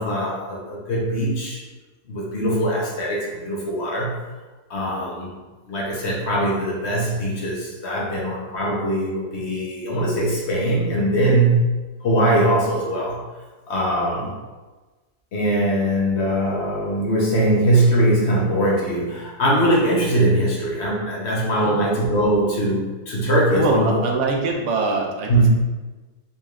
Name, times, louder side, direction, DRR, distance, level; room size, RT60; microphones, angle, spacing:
voice 1, 0.0-1.6 2.1-4.2 4.7-5.3 5.7-11.7 12.0-13.2 13.7-14.3 15.3-24.0 25.3-25.5, right 1 dB, 60° left, -4 dB, 1.1 m, -21 dB
voice 2, 23.5-25.5, right 3 dB, 75° right, 1 dB, 0.9 m, -23 dB
3.9 x 3.1 x 2.4 m, 1.2 s
omnidirectional pair, 1.3 m